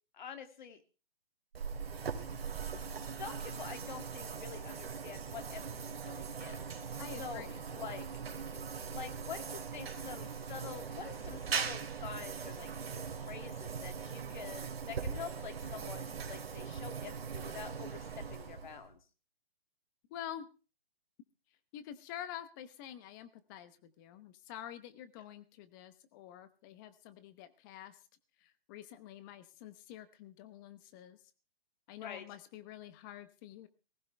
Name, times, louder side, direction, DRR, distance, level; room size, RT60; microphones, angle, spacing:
voice 1, 0.1-0.8 3.2-6.7 7.2-8.0 8.8-18.0 18.3-19.0 32.0-32.3, left 7 dB, 50° left, 7 dB, 2.4 m, -47 dB
sound 1, 1.5-18.9, right 6 dB, 75° right, 2.9 m, -41 dB
voice 2, 7.0-7.6 20.1-20.5 21.7-28.0 28.4-31.2 31.9-33.7, left 11 dB, 20° left, 13 dB, 0.9 m, -48 dB
19.0 x 16.5 x 3.4 m, 0.35 s
hypercardioid pair, 155°, 30 cm